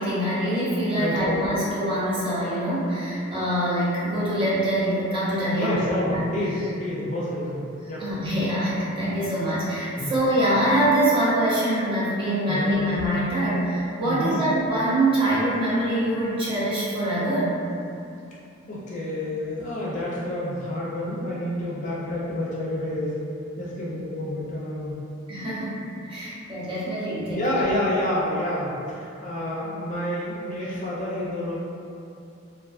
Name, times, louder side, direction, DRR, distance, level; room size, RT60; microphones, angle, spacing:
voice 1, 0.0-6.2 8.0-17.6 25.3-27.4, right 1 dB, 25° right, -10 dB, 0.6 m, -24 dB
voice 2, 1.0-1.4 5.5-8.1 10.0-10.1 12.5-12.8 14.0-14.4 18.7-23.2 23.6-25.0 27.3-31.6, left 1 dB, 35° left, -7 dB, 0.4 m, -29 dB
2.3 x 2.3 x 2.3 m, 2.6 s
head